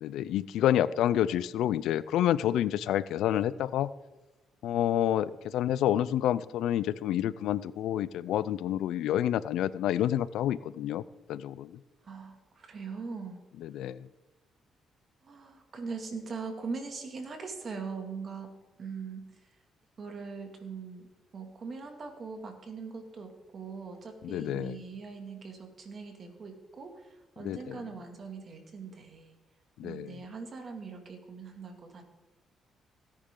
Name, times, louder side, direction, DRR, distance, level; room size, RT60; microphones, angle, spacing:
voice 1, 0.0-3.9 4.6-11.0 11.3-11.8 13.6-14.1 24.2-24.8 27.4-27.8 29.8-30.1, left 11 dB, 85° left, 17 dB, 0.4 m, -28 dB
voice 2, 12.0-13.4 15.2-18.5 18.8-19.5 20.0-21.1 21.3-29.4 29.8-32.0, right 4 dB, 45° right, 4 dB, 2.4 m, -41 dB
17.0 x 10.0 x 3.9 m, 1.1 s
cardioid pair, 90°, 0 cm